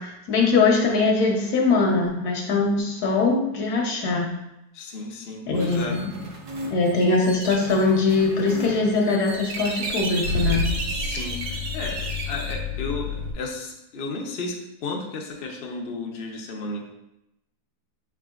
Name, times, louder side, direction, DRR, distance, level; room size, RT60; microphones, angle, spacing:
voice 1, 0.0-4.3 5.4-6.1 6.7-10.7, left 3 dB, 75° left, 0 dB, 1.4 m, -22 dB
voice 2, 4.7-6.0 10.9-16.9, left 3 dB, 55° left, 0 dB, 0.7 m, -34 dB
sound 1, 5.6-12.5, right 2 dB, 60° right, 1.0 m, -34 dB
Car / Engine starting / Idling, 9.8-13.3, left 3 dB, 85° right, 1.3 m, -29 dB
5.7 x 3.7 x 2.4 m, 0.87 s
omnidirectional pair, 1.7 m